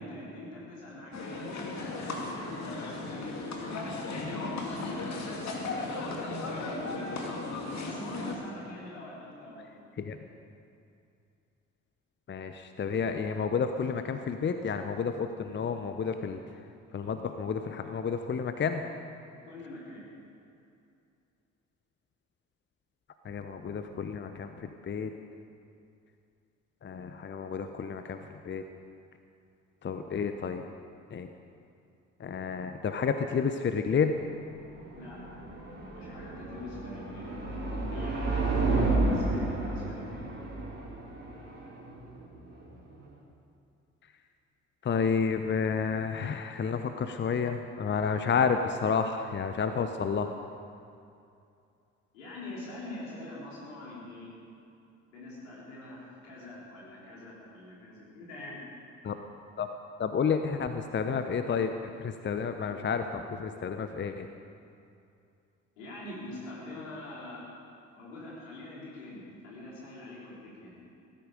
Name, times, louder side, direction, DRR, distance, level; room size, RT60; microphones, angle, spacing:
voice 1, 0.0-7.2 7.8-9.7 19.4-20.1 35.0-35.4 35.9-37.3 37.9-38.5 39.0-40.3 52.1-54.3 55.1-58.6 65.8-67.4 67.9-70.8, left 1 dB, 75° left, -6 dB, 4.6 m, -44 dB
sound 1, 1.1-8.3, left 3 dB, 45° left, 2.6 m, -36 dB
voice 2, 12.3-16.4 16.9-18.8 23.2-25.1 26.8-28.2 28.4-28.6 29.8-30.6 31.1-31.3 32.2-34.1 44.8-50.3 59.0-59.2 59.6-59.7 60.0-64.3, left 6 dB, 30° left, 8 dB, 0.9 m, -30 dB
sound 2, 34.1-43.1, right 2 dB, 25° right, 4.9 m, -32 dB
17.0 x 14.5 x 5.1 m, 2.6 s
figure-of-eight pair, 50°, 39 cm